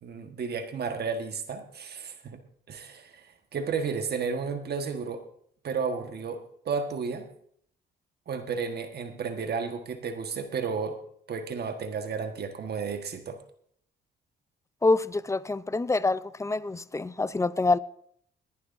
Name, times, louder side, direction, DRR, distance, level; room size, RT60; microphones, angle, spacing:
voice 1, 0.0-2.4 2.7-5.2 5.6-7.3 8.3-11.0 11.3-13.4, right 5 dB, 55° right, 1.4 m, -32 dB
voice 2, 14.8-17.8, left 3 dB, 15° left, 0.5 m, -26 dB
20.5 x 11.0 x 2.6 m
cardioid pair, 90°, 20 cm